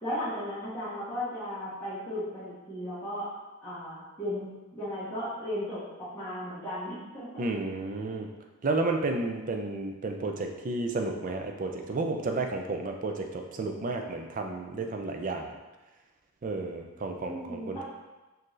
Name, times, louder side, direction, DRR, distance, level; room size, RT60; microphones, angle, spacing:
voice 1, 0.0-3.3 3.6-7.4 17.2-17.8, equal, 10° left, -15 dB, 1.3 m, -36 dB
voice 2, 7.4-8.3 8.6-15.5 16.4-17.8, right 3 dB, 40° right, 3 dB, 0.4 m, -32 dB
4.3 x 2.7 x 3.1 m, 1.1 s
head